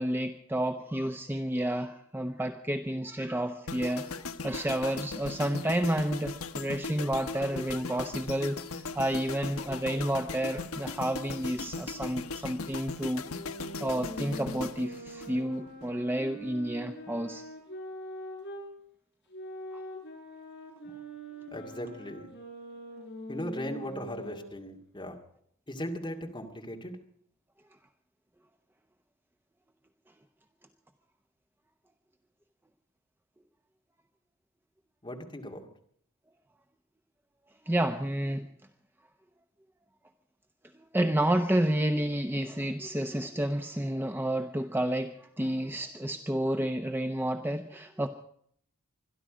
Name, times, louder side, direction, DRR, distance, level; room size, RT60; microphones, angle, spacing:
voice 1, 0.0-13.2 13.8-17.4 19.7-19.8 37.7-38.5 40.7-48.1, right 1 dB, 10° right, 6 dB, 0.8 m, -30 dB
sound 1, 3.7-15.9 16.1-16.4, left 4 dB, 75° left, 1.0 m, -39 dB
sound 2, 13.2-18.7 19.3-24.5, equal, 55° left, 7.3 m, -43 dB
voice 2, 21.5-22.3 23.3-25.2 25.7-27.0 35.0-35.7, equal, 20° left, 2 dB, 2.3 m, -38 dB
25.5 x 11.0 x 5.1 m, 0.64 s
head